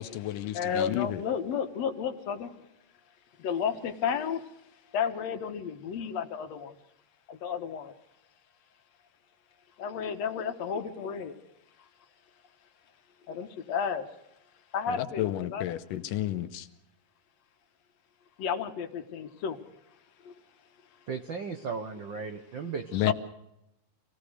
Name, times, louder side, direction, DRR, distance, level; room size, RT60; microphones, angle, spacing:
voice 1, 0.0-1.2 14.9-16.7 22.9-23.1, left 13 dB, 85° left, 10 dB, 2.6 m, -31 dB
voice 2, 0.5-2.5 3.4-4.5 4.9-6.8 7.3-7.9 9.8-11.3 13.3-14.1 14.7-15.7 18.4-19.6 20.2-20.3 22.9-23.1, left 7 dB, 60° left, 7 dB, 2.2 m, -32 dB
voice 3, 21.1-23.1, right 5 dB, 65° right, 6 dB, 1.1 m, -36 dB
26.0 x 17.0 x 6.4 m, 0.84 s
omnidirectional pair, 3.8 m